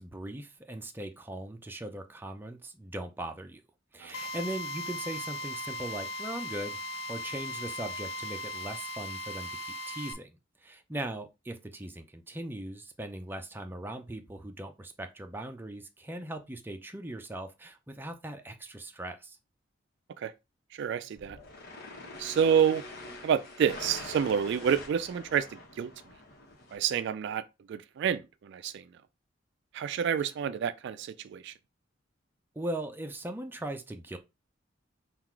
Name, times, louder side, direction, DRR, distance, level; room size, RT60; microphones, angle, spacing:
voice 1, 0.0-3.6 3.9-6.8 7.1-19.4 32.5-34.2, right 1 dB, 10° right, 0.5 m, -39 dB
Drill, 4.1-10.1, left 1 dB, 80° left, 0.5 m, -38 dB
voice 2, 20.7-21.4 22.2-22.8 23.2-25.5 25.8-25.9 26.7-27.4 27.7-28.8 29.7-31.5, right 8 dB, 65° right, 0.3 m, -28 dB
sound 1, 21.1-26.8, left 2 dB, 55° left, 1.2 m, -45 dB
3.8 x 2.4 x 4.5 m
head